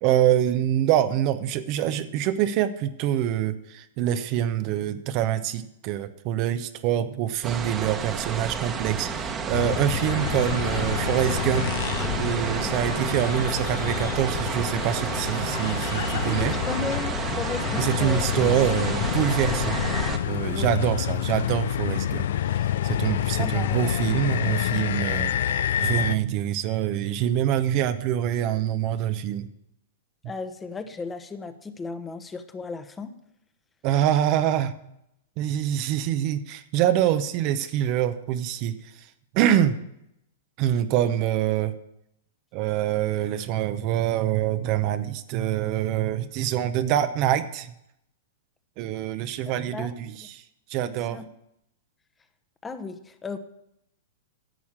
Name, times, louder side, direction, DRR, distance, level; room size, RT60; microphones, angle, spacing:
voice 1, 0.0-11.7 12.2-16.6 17.8-19.8 20.2-22.2 22.5-25.3 25.8-29.5 33.8-34.7 35.4-39.1 39.3-39.8 40.6-41.7 42.5-47.7 48.8-50.4 50.7-51.2, right 11 dB, 45° right, 11 dB, 0.7 m, -25 dB
sound 1, 7.4-20.2, right 5 dB, 25° right, 1.2 m, -30 dB
sound 2, 9.5-26.2, left 10 dB, 65° left, 0.5 m, -28 dB
voice 2, 16.2-18.3 20.6-20.7 23.4-24.1 30.2-33.1 49.7-49.9 50.2-50.3 51.1-51.3 52.6-53.4, left 4 dB, 15° left, 9 dB, 0.9 m, -35 dB
11.0 x 7.1 x 7.3 m, 0.80 s
hypercardioid pair, 110°, 0 cm